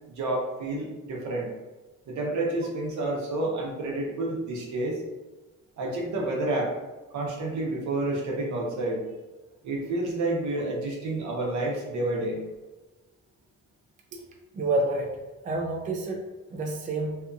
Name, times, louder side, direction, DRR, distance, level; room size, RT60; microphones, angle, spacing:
voice 1, 0.2-1.5 2.1-5.0 5.8-6.7 7.1-9.0 9.6-12.4, right 2 dB, 70° right, -2 dB, 0.8 m, -29 dB
voice 2, 14.5-15.2 15.4-16.2 16.5-17.2, right 2 dB, 25° right, 0 dB, 0.4 m, -28 dB
2.8 x 2.5 x 2.3 m, 1.1 s
cardioid pair, 90°, 30 cm